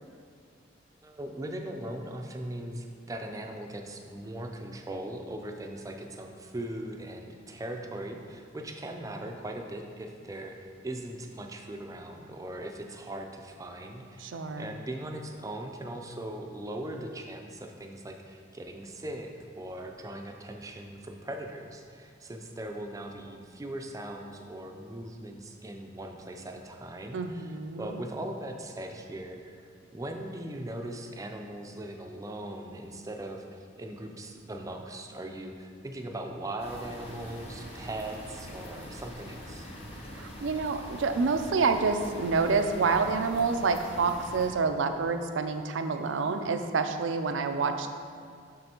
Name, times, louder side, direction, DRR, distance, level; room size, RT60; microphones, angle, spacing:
voice 1, 1.0-39.7, right 1 dB, 20° right, 3 dB, 0.4 m, -40 dB
voice 2, 14.2-14.7 27.1-28.0 40.1-47.9, right 4 dB, 80° right, 7 dB, 0.4 m, -28 dB
sound 1, 36.6-44.5, equal, 35° left, 1.0 m, -44 dB
7.5 x 6.1 x 2.9 m, 2.1 s
head